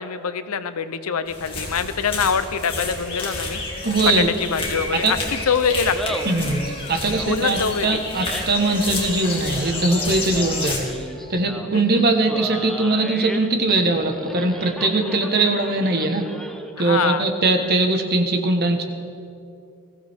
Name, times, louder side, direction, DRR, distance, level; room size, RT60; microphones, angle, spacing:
voice 1, 0.0-3.6 4.0-6.2 7.3-8.0 11.7-12.0 16.8-17.2, left 6 dB, 75° left, 12 dB, 0.7 m, -24 dB
sound 1, 1.3-10.8, left 2 dB, 25° left, 2.3 m, -30 dB
sound 2, 2.7-8.1 8.5-11.4 12.0-12.3, left 1 dB, 40° left, 1.5 m, -42 dB
voice 2, 3.8-4.3 5.0-5.1 6.2-10.9 11.3-16.3 16.8-18.8, right 2 dB, 45° right, 5 dB, 1.2 m, -21 dB
Laughter, 5.8-16.8, equal, ahead, 0.6 m, -36 dB
20.5 x 15.0 x 3.5 m, 2.6 s
head